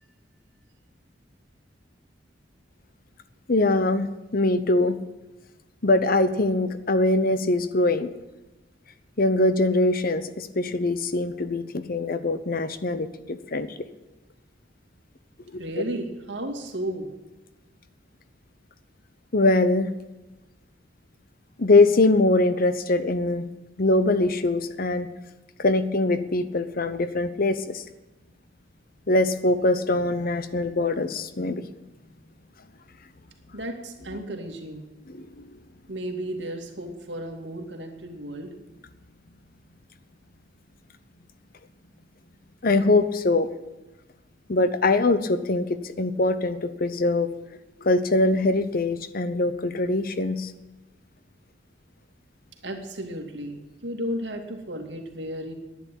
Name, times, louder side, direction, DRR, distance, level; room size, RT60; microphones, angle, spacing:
voice 1, 3.5-5.0 5.8-8.1 9.2-13.7 15.5-15.6 19.3-19.9 21.6-23.5 23.8-25.1 25.6-27.8 29.1-31.7 35.1-35.4 42.6-43.5 44.5-47.3 47.8-50.5, left 2 dB, 55° left, 12 dB, 0.9 m, -22 dB
voice 2, 15.6-17.1 33.5-34.9 35.9-38.5 52.6-55.5, right 1 dB, 70° right, 3 dB, 2.4 m, -33 dB
11.0 x 9.9 x 9.0 m, 1.1 s
head